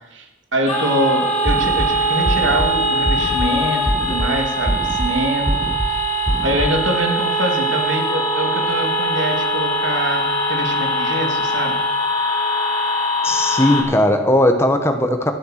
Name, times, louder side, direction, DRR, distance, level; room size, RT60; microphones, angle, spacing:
voice 1, 0.1-6.0 6.4-11.8, right 1 dB, 80° right, 3 dB, 2.6 m, -24 dB
sound 1, 0.7-13.8, right 1 dB, 35° left, 5.4 m, -21 dB
sound 2, 1.4-1.9 2.3-2.7 3.1-3.5 3.9-4.3 4.7-5.1 5.5-5.9 6.3-6.7, equal, 5° right, 0.9 m, -23 dB
voice 2, 13.2-15.3, left 1 dB, 15° left, 6 dB, 1.3 m, -17 dB
13.5 x 11.5 x 6.6 m, 0.95 s
head